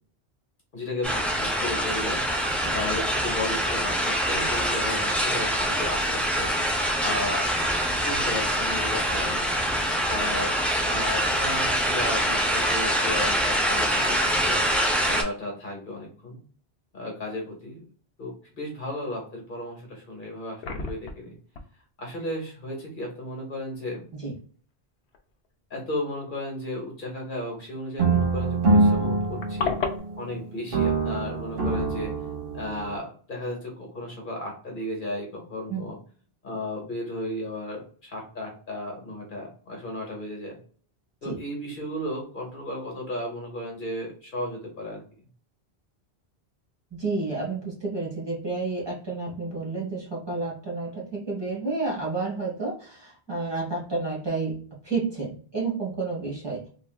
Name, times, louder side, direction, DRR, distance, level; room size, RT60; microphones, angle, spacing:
voice 1, 0.7-6.6 7.0-7.5 8.0-9.5 10.1-10.5 10.8-14.6 15.1-16.4 16.9-17.8 18.2-21.3 22.0-24.0 25.7-29.7 30.2-32.1 32.5-36.0 36.4-40.6 41.2-45.0, left 1 dB, 55° left, 0 dB, 1.1 m, -34 dB
sound 1, 1.0-15.2, equal, ahead, 0.4 m, -25 dB
sound 2, 19.9-20.0 20.3-21.3 21.6-21.7 24.1-24.3 25.1-25.2 25.5-25.6 28.0-28.1 28.3-28.4 28.7-30.0, left 5 dB, 85° left, 0.9 m, -31 dB
sound 3, 28.0-30.3 30.7-33.0, right 3 dB, 60° right, 1.0 m, -24 dB
voice 2, 46.9-56.7, right 3 dB, 25° right, -5 dB, 1.5 m, -30 dB
3.3 x 2.5 x 2.3 m, 0.43 s
omnidirectional pair, 1.1 m